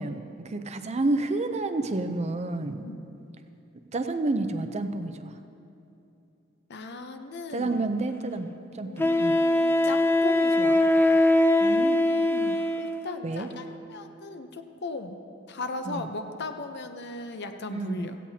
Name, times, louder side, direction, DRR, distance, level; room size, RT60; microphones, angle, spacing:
voice 1, 0.0-2.8 3.9-5.3 7.5-8.5 8.7-9.4 11.6-12.6 13.2-13.5 15.8-16.1 17.7-18.1, right 2 dB, 35° right, 8 dB, 0.6 m, -30 dB
voice 2, 6.7-7.8 8.8-10.8 12.8-15.2 15.5-18.2, left 2 dB, 60° left, 7 dB, 0.8 m, -37 dB
Wind instrument woodwind instrument, 7.7-7.8 9.0-13.1, left 1 dB, 10° left, 0.4 m, -22 dB
17.0 x 15.5 x 2.8 m, 2.7 s
head